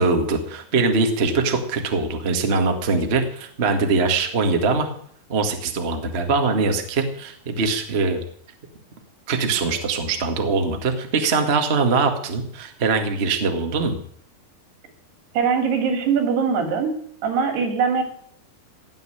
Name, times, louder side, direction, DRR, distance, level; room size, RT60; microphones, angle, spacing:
voice 1, 0.0-4.9 5.3-8.2 9.3-14.0, right 4 dB, 35° right, 5 dB, 1.0 m, -22 dB
voice 2, 15.3-16.9 17.2-18.0, right 6 dB, 85° right, 6 dB, 4.8 m, -21 dB
18.0 x 7.0 x 10.0 m, 0.63 s
omnidirectional pair, 4.6 m